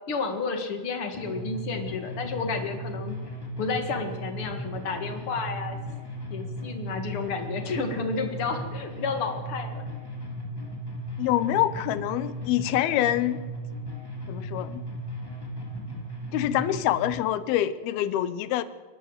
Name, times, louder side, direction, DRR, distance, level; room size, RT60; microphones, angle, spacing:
voice 1, 0.1-3.2 3.6-5.8 6.3-9.8, left 4 dB, 45° left, 6 dB, 2.0 m, -31 dB
sound 1, 1.1-17.1, right 1 dB, 5° left, 2.6 m, -36 dB
voice 2, 11.2-13.4 14.3-14.8 16.3-18.6, left 13 dB, 75° left, 15 dB, 2.5 m, -25 dB
29.0 x 12.0 x 8.0 m, 1.4 s
omnidirectional pair, 5.0 m